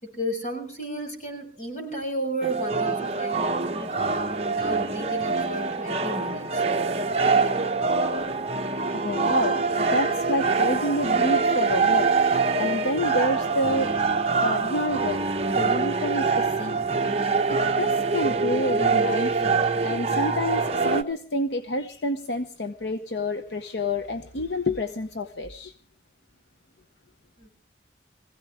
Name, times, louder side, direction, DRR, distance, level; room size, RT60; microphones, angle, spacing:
voice 1, 0.0-3.9 4.5-6.6 27.4-27.5, right 1 dB, 40° left, 6.7 m, -33 dB
sound 1, 2.4-21.0, right 4 dB, 35° right, 1.0 m, -24 dB
voice 2, 9.0-13.9 14.4-15.2 15.6-16.8 17.5-25.7, left 1 dB, 70° left, 0.9 m, -29 dB
24.0 x 16.0 x 3.4 m
head